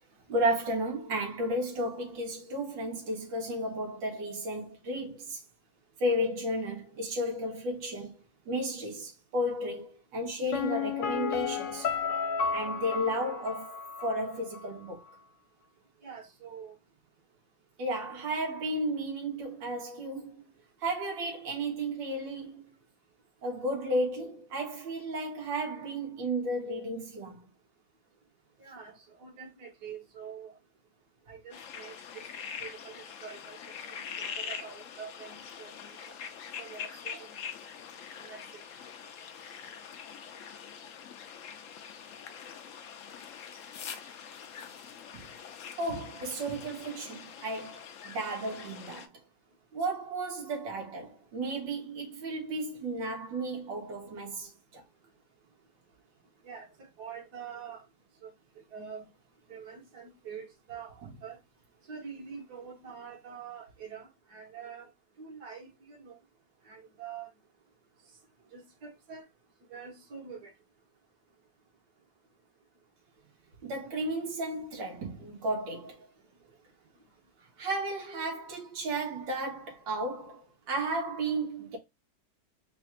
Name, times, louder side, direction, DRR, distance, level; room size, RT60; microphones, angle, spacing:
voice 1, 0.3-5.4 6.0-8.2 8.5-11.9 12.5-15.0 17.8-20.4 20.8-22.7 23.4-27.4 45.1-45.2 45.8-49.1 49.7-54.8 73.6-76.1 77.6-81.8, right 1 dB, 85° right, 1.9 m, -33 dB
Piano, 10.5-14.3 14.5-14.6, left 6 dB, 80° left, 1.5 m, -32 dB
voice 2, 16.0-16.8 28.6-30.5 31.3-32.2 32.6-33.6 33.9-36.2 36.6-37.3 38.2-38.4 56.4-56.7 57.0-57.8 58.2-58.3 58.7-59.1 59.5-61.4 61.9-64.9 65.2-66.2 66.7-67.3 68.5-69.2 69.7-70.5, right 6 dB, 60° right, 1.9 m, -45 dB
sound 1, 31.5-49.1, left 7 dB, 65° left, 0.8 m, -44 dB
4.1 x 2.5 x 4.2 m
omnidirectional pair, 1.9 m